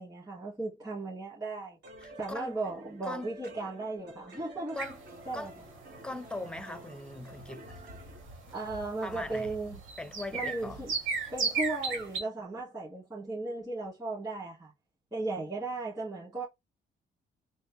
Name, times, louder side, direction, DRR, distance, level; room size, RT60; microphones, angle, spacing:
voice 1, 0.0-1.8 2.2-4.8 5.3-5.5 8.5-9.8 10.3-10.9 11.3-14.7 15.1-16.5, right 2 dB, 20° right, 2.2 m, -36 dB
sound 1, 1.8-8.3, right 1 dB, 60° right, 1.7 m, -50 dB
voice 2, 2.0-2.5 3.0-3.3 4.7-5.0 5.3-5.5 6.0-7.8 9.0-9.6 10.0-10.8, left 2 dB, 5° left, 0.6 m, -40 dB
sound 2, 4.8-12.2, right 4 dB, 80° right, 1.6 m, -37 dB
4.1 x 2.3 x 3.5 m
cardioid pair, 90°, 20 cm